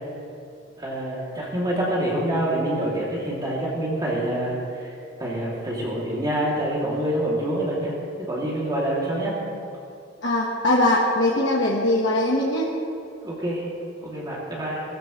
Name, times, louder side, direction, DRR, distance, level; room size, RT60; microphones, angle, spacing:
voice 1, 0.8-4.9 5.2-7.9 8.3-9.3 13.2-13.6 14.0-14.8, right 1 dB, 20° right, -6 dB, 2.9 m, -26 dB
voice 2, 10.2-12.7, left 1 dB, 70° left, -4 dB, 1.6 m, -21 dB
21.5 x 15.0 x 3.3 m, 2.5 s
head